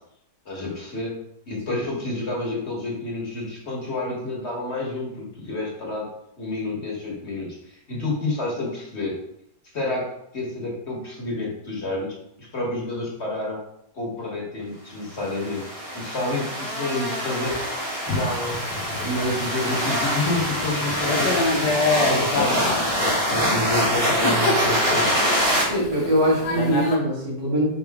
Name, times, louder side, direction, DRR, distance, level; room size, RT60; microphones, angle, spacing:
voice 1, 0.4-1.1 1.5-6.0 6.4-9.1 9.7-10.0 10.3-12.1 12.4-13.6 13.9-15.6 15.9-17.6 18.0-18.6 19.0-22.6 22.9-25.1, left 2 dB, 40° left, -2 dB, 1.6 m, -29 dB
sound 1, 15.2-25.6, equal, 60° right, 2.4 m, -25 dB
Thunder / Rain, 18.1-27.0, left 2 dB, 70° left, 1.5 m, -28 dB
voice 2, 25.7-27.7, equal, 85° right, -5 dB, 2.9 m, -22 dB
5.8 x 5.2 x 3.6 m, 0.78 s
omnidirectional pair, 1.8 m